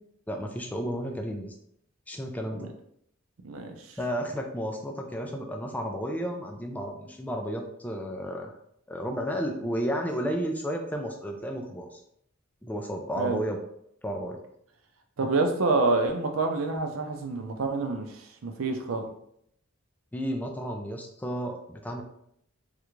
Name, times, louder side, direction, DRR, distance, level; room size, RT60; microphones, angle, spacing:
voice 1, 0.3-1.5 2.1-2.7 4.0-8.5 8.9-12.0 12.6-13.6 14.0-14.4 20.1-22.0, equal, 10° left, 2 dB, 0.3 m, -32 dB
voice 2, 3.4-4.0 13.2-13.4 15.2-19.1, right 3 dB, 75° right, 5 dB, 0.5 m, -27 dB
3.3 x 2.5 x 3.0 m, 0.71 s
head